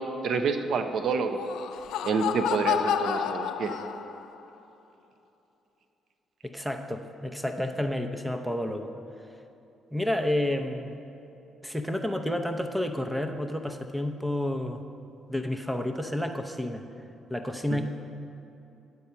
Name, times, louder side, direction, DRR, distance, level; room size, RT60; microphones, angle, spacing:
voice 1, 0.0-1.4 2.0-3.8 17.7-17.8, right 5 dB, 65° right, 8 dB, 0.6 m, -28 dB
Laughter, 1.2-4.4, left 9 dB, 85° left, 0.4 m, -30 dB
voice 2, 6.4-8.9 9.9-11.0 11.6-14.8 15.3-16.8 17.3-17.8, left 1 dB, 5° right, 6 dB, 0.6 m, -30 dB
9.6 x 4.5 x 6.9 m, 2.9 s
cardioid pair, 90°, 0 cm